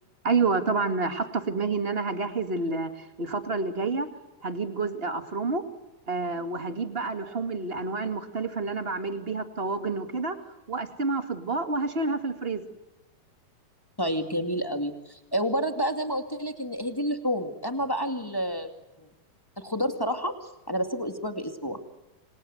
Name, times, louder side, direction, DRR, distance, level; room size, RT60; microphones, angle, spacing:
voice 1, 0.2-4.1 4.4-5.6 6.1-10.4 10.7-12.6, right 3 dB, 25° right, 8 dB, 1.2 m, -29 dB
voice 2, 14.0-18.7 19.0-19.1 19.6-21.8, equal, 10° left, 6 dB, 1.5 m, -29 dB
28.5 x 26.5 x 7.9 m, 1.0 s
omnidirectional pair, 4.3 m